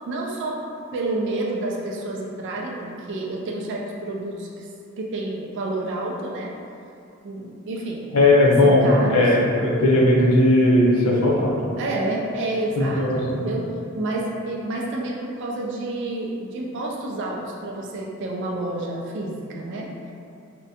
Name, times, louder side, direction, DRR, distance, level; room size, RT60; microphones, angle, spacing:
voice 1, 0.1-0.6 0.9-4.7 5.0-6.5 7.2-8.0 8.6-9.3 11.8-13.7 13.9-19.9, right 2 dB, 55° right, -2 dB, 0.3 m, -29 dB
voice 2, 8.1-11.5 12.8-13.4, left 1 dB, 85° left, -3 dB, 0.6 m, -17 dB
3.5 x 2.1 x 2.7 m, 2.6 s
head